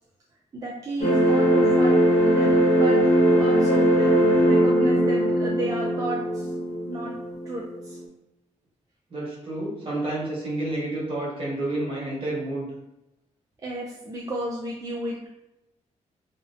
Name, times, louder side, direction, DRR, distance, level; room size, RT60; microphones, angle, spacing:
voice 1, 0.5-3.0 3.3-4.2 4.4-6.5 6.9-7.1 7.5-8.0 13.6-15.3, right 1 dB, 30° right, -4 dB, 0.3 m, -33 dB
sound 1, 1.0-8.0, equal, 80° left, 0.7 m, -20 dB
voice 2, 9.1-12.7, right 2 dB, 45° right, -6 dB, 1.0 m, -29 dB
2.5 x 2.0 x 2.5 m, 0.91 s
wide cardioid pair, 135°, 13 cm